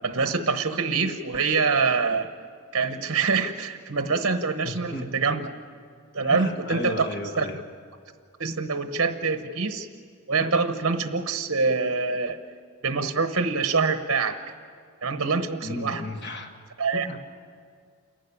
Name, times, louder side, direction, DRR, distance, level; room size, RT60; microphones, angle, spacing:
voice 1, 0.0-2.3 2.7-5.5 6.1-7.1 7.4-7.5 8.4-9.9 10.3-12.4 12.8-14.4 15.0-16.0 16.8-17.1, right 4 dB, 60° right, 8 dB, 0.9 m, -25 dB
voice 2, 4.6-5.2 6.2-7.6 15.6-16.5 16.9-17.2, left 1 dB, 50° left, 4 dB, 1.5 m, -33 dB
28.0 x 11.5 x 9.9 m, 2.2 s
head